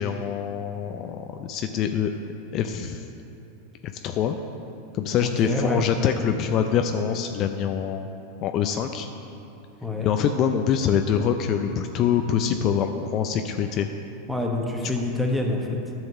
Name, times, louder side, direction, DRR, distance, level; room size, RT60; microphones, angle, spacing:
voice 1, 0.0-2.1 2.5-3.0 4.0-4.3 4.9-8.1 8.4-9.1 10.0-13.9, left 8 dB, 45° left, 6 dB, 0.4 m, -24 dB
voice 2, 5.2-5.9 9.8-10.1 14.3-15.8, left 2 dB, 5° right, 0 dB, 1.3 m, -26 dB
10.5 x 4.6 x 6.8 m, 2.9 s
hypercardioid pair, 95°, 0 cm